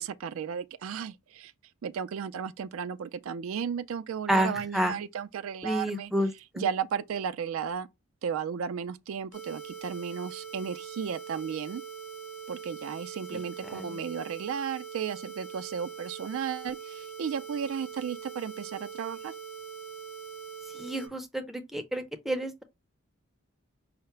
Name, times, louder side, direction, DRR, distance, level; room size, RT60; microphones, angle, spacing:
voice 1, 0.0-1.5 1.8-6.1 6.6-7.9 8.2-11.8 12.5-19.3, right 7 dB, 75° right, 0.4 m, -34 dB
voice 2, 4.3-5.0 5.6-6.3 6.5-6.7 13.6-13.8 20.7-22.6, right 1 dB, ahead, 0.5 m, -29 dB
sound 1, 9.3-21.1, right 7 dB, 85° left, 2.5 m, -43 dB
5.6 x 2.0 x 4.4 m
head